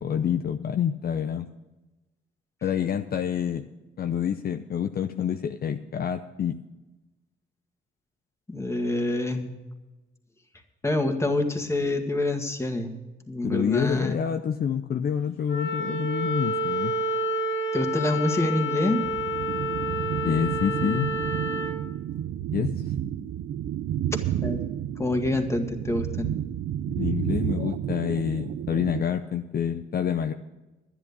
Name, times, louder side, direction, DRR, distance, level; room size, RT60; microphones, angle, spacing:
voice 1, 0.0-1.5 2.6-3.7 4.0-6.6 13.4-17.0 20.2-21.1 22.5-22.7 27.0-30.3, left 8 dB, 50° left, 7 dB, 0.7 m, -27 dB
voice 2, 8.5-9.5 10.8-12.9 13.3-14.2 17.7-19.1 24.1-24.6 25.0-26.3, left 2 dB, 15° left, 4 dB, 1.9 m, -26 dB
Wind instrument woodwind instrument, 15.5-21.8, equal, 65° left, 2.3 m, -29 dB
sound 1, 19.0-29.0, right 11 dB, 75° right, 0.6 m, -31 dB
11.0 x 10.0 x 6.9 m, 1.1 s
cardioid pair, 90°, 20 cm